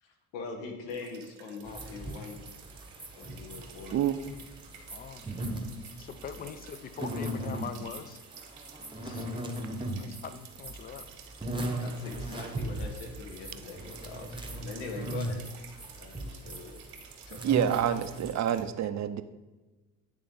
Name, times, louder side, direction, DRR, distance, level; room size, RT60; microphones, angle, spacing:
voice 1, 0.0-2.4 3.1-4.0 6.3-6.5 11.8-15.4 15.9-16.8 17.3-17.4, left 4 dB, 75° left, 3 dB, 1.2 m, -43 dB
sound 1, 0.9-18.6, right 8 dB, 85° right, 1.0 m, -53 dB
sound 2, 1.7-18.3, right 1 dB, 10° right, 0.9 m, -38 dB
voice 2, 4.9-5.3 6.0-8.2 8.7-9.3 10.0-11.1, left 7 dB, 20° left, 12 dB, 0.4 m, -43 dB
voice 3, 17.4-19.2, right 10 dB, 40° right, 11 dB, 0.5 m, -28 dB
9.8 x 3.4 x 3.8 m, 1.2 s
hypercardioid pair, 65°, 45 cm